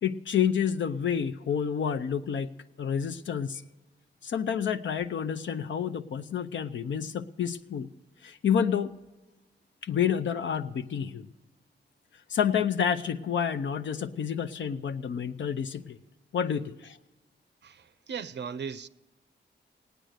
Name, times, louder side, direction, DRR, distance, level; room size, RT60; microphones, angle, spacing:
voice 1, 0.0-2.5 2.8-3.6 4.2-7.9 8.2-8.9 9.8-11.3 12.3-16.0 16.3-17.0, left 8 dB, 80° left, 0.6 m, -29 dB
voice 2, 17.6-18.9, right 6 dB, 70° right, 0.6 m, -37 dB
18.0 x 9.2 x 6.5 m
wide cardioid pair, 115°, 19 cm